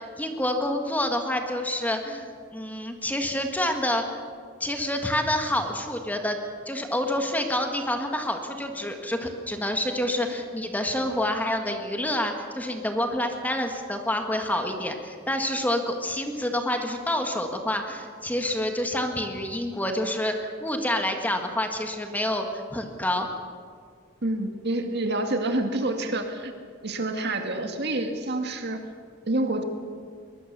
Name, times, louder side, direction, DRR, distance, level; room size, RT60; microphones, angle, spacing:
voice 1, 0.0-4.2 4.6-23.3, left 1 dB, 10° left, 4 dB, 1.7 m, -28 dB
voice 2, 24.2-26.5 26.8-28.8 29.3-29.6, right 2 dB, 55° right, 5 dB, 2.1 m, -27 dB
22.5 x 20.5 x 6.9 m, 2.1 s
head